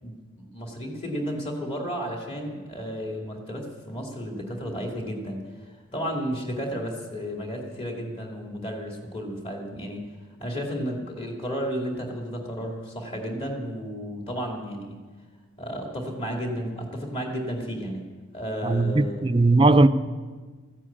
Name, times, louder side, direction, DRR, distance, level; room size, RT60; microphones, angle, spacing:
voice 1, 0.0-10.1 10.4-15.0 15.6-18.0 18.3-19.3, equal, 30° left, 2.5 m, -33 dB
voice 2, 18.6-19.9, right 2 dB, 25° right, 0.5 m, -18 dB
15.0 x 9.9 x 8.6 m
head